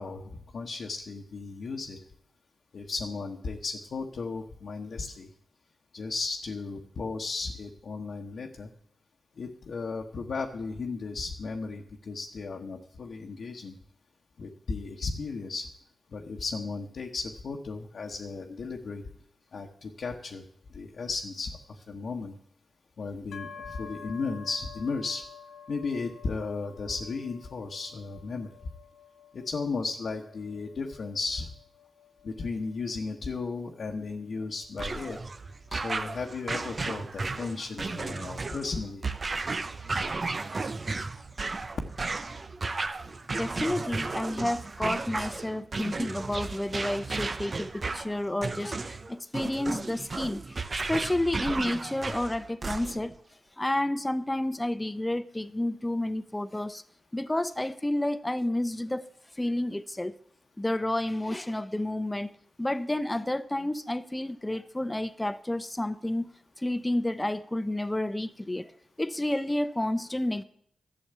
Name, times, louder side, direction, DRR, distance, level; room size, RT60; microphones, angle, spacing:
voice 1, 0.0-2.0 2.7-5.3 5.9-8.7 9.4-13.8 14.4-15.7 16.1-19.0 19.5-20.4 20.7-22.3 23.0-25.3 25.7-28.5 29.3-31.5 32.2-35.2 35.7-39.0, left 4 dB, 65° left, 1.3 m, -35 dB
sound 1, 23.3-37.0, left 6 dB, 90° left, 0.9 m, -50 dB
sound 2, 34.8-53.2, right 3 dB, 45° right, 0.8 m, -34 dB
voice 2, 43.3-50.6 50.9-53.2 53.6-56.8 57.1-59.1 59.4-60.1 60.6-62.3 62.6-66.3 66.6-68.7 69.0-70.4, left 1 dB, 15° left, 0.9 m, -30 dB
12.5 x 7.1 x 8.2 m
cardioid pair, 55°, 0 cm